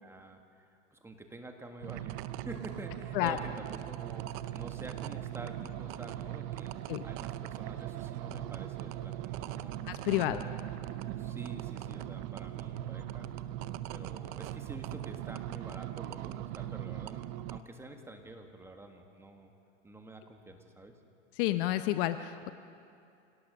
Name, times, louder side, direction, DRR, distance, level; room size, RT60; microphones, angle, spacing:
voice 1, 0.0-9.8 10.2-10.9 11.2-13.3 13.9-19.5 19.8-20.9, right 1 dB, 5° right, 4 dB, 1.5 m, -48 dB
sound 1, 1.8-17.6, right 13 dB, 35° right, 0.6 m, -40 dB
voice 2, 9.9-10.4 21.4-22.5, left 15 dB, 45° left, 10 dB, 0.8 m, -30 dB
27.0 x 18.0 x 6.4 m, 2.6 s
hypercardioid pair, 135°, 38 cm